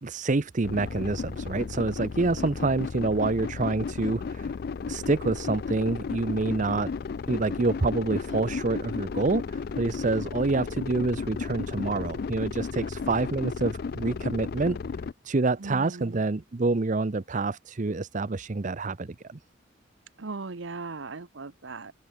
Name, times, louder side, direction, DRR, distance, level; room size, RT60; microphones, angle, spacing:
voice 1, 0.0-4.5 4.9-6.9 7.3-14.8 15.2-19.4, right 3 dB, 40° right, 0.6 m, -27 dB
sound 1, 0.6-15.1, left 5 dB, 50° left, 0.4 m, -34 dB
voice 2, 15.6-16.2 20.2-21.9, right 3 dB, 65° right, 1.0 m, -38 dB
open air
head